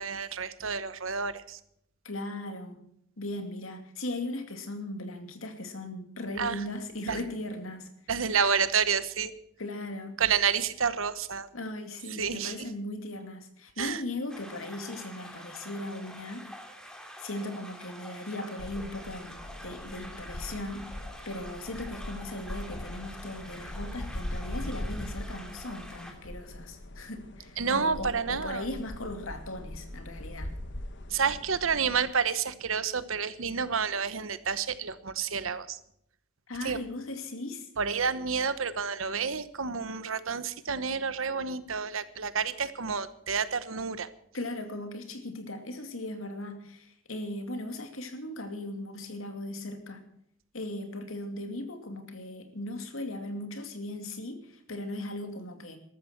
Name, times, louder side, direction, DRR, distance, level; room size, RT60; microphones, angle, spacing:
voice 1, 0.0-1.6 6.4-6.6 7.1-7.2 8.1-9.3 10.2-11.5 12.2-12.5 13.8-14.0 27.6-28.6 31.1-35.8 36.6-36.8 37.8-44.1, right 6 dB, 75° right, 14 dB, 1.1 m, -29 dB
voice 2, 2.0-2.8 3.2-7.9 8.3-8.4 9.6-10.2 11.5-16.4 17.2-19.3 19.6-20.8 21.2-30.5 36.5-37.7 44.3-50.0 50.5-55.8, left 1 dB, 75° left, 7 dB, 2.6 m, -38 dB
sound 1, 14.3-26.1, equal, 5° left, 2.7 m, -46 dB
sound 2, 18.6-32.1, left 1 dB, 60° left, 1.5 m, -41 dB
14.5 x 13.0 x 6.0 m, 0.71 s
head